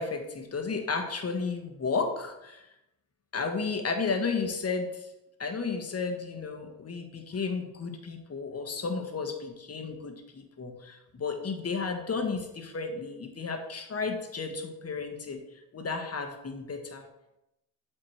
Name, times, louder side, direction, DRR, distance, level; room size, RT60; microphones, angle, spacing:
voice 1, 0.0-2.6 3.3-5.1 5.4-15.4 15.7-17.0, left 4 dB, 30° left, 4 dB, 1.3 m, -33 dB
7.4 x 4.6 x 3.2 m, 0.90 s
hypercardioid pair, 50°, 48 cm